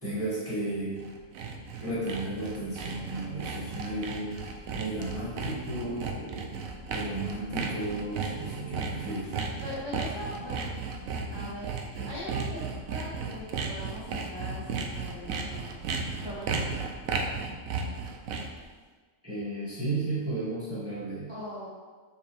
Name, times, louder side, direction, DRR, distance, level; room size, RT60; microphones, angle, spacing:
voice 1, 0.0-1.0 1.8-6.5 6.9-9.3 19.2-21.3, right 2 dB, 10° right, -10 dB, 1.8 m, -34 dB
Sawing, 0.8-18.6, right 5 dB, 80° right, 1.1 m, -34 dB
voice 2, 9.6-10.7 11.3-15.7 16.2-16.8 21.3-21.7, left 1 dB, 20° left, -10 dB, 1.9 m, -41 dB
6.7 x 5.2 x 3.4 m, 1.4 s
omnidirectional pair, 1.4 m